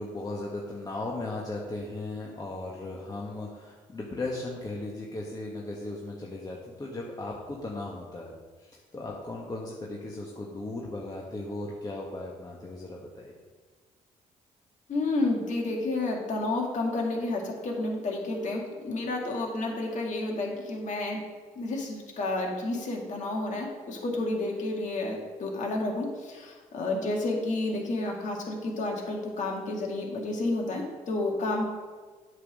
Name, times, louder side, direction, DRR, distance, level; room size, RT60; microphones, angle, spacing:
voice 1, 0.0-8.3 8.6-13.3, left 2 dB, 25° left, -3 dB, 1.3 m, -37 dB
voice 2, 14.9-21.2 21.6-31.7, left 2 dB, 60° left, 0 dB, 2.0 m, -30 dB
8.1 x 3.8 x 6.2 m, 1.5 s
supercardioid pair, 60°, 14 cm